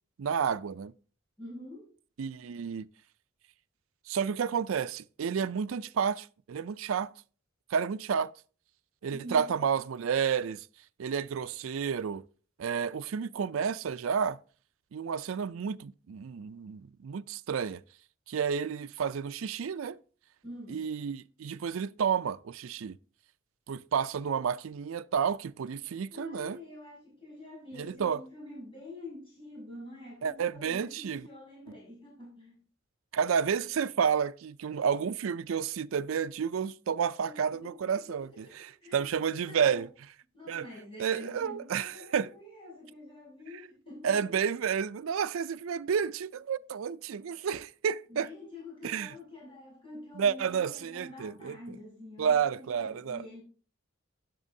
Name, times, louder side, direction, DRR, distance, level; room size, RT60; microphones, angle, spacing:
voice 1, 0.2-0.9 2.2-2.9 4.1-7.1 7.7-8.3 9.0-10.7 11.0-12.2 12.6-14.4 14.9-17.8 18.3-20.0 20.7-23.0 23.7-26.6 27.8-28.2 30.2-31.2 33.1-39.9 40.5-40.7 41.0-42.3 44.0-48.3 48.8-49.1 50.1-51.6 52.2-53.2, right 7 dB, 80° right, 0.4 m, -31 dB
voice 2, 1.4-1.9 9.1-9.5 20.4-20.8 26.1-32.5 37.2-37.3 37.6-39.8 40.3-44.2 48.1-53.4, left 1 dB, 25° left, 6.3 m, -47 dB
12.5 x 10.5 x 2.7 m
head